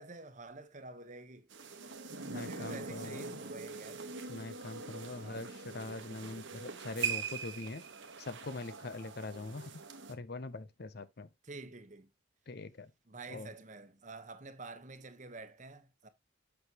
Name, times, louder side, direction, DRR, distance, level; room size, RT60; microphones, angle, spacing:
voice 1, 0.0-1.6 2.3-4.1 5.2-5.5 11.4-12.1 13.1-16.1, right 3 dB, 35° right, 1.0 m, -49 dB
sound 1, 1.5-10.1, right 5 dB, 65° right, 1.2 m, -42 dB
voice 2, 2.3-3.4 4.3-7.8 8.2-9.7 10.1-11.3 12.5-12.9 13.3-13.5, left 3 dB, 50° left, 0.6 m, -43 dB
8.5 x 6.1 x 2.9 m
head